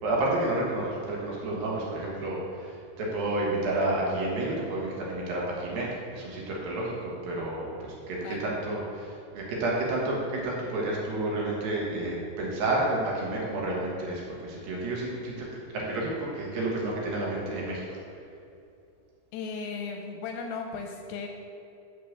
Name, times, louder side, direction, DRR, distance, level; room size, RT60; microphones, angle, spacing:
voice 1, 0.0-15.5 15.7-18.0, right 2 dB, 70° right, -4 dB, 3.2 m, -30 dB
voice 2, 19.3-21.3, left 5 dB, 80° left, 3 dB, 2.3 m, -36 dB
6.7 x 6.6 x 6.8 m, 2.6 s
omnidirectional pair, 4.5 m